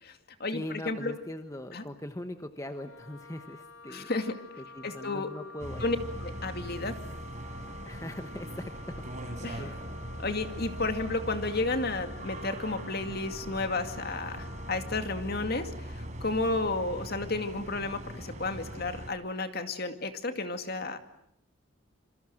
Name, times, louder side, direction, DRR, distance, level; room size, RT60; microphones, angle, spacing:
voice 1, 0.0-1.1 1.7-1.8 3.9-4.4 4.8-5.3 5.8-7.0 9.4-9.6 10.2-21.0, left 3 dB, 50° left, 8 dB, 2.3 m, -32 dB
voice 2, 0.5-4.1 4.6-6.0 7.8-9.7, left 1 dB, 15° left, 8 dB, 1.2 m, -41 dB
Wind instrument woodwind instrument, 2.6-15.1, left 2 dB, 85° left, 5.2 m, -49 dB
sound 1, 5.6-19.1, equal, 35° right, 4.0 m, -41 dB
27.5 x 25.0 x 7.7 m, 0.77 s
head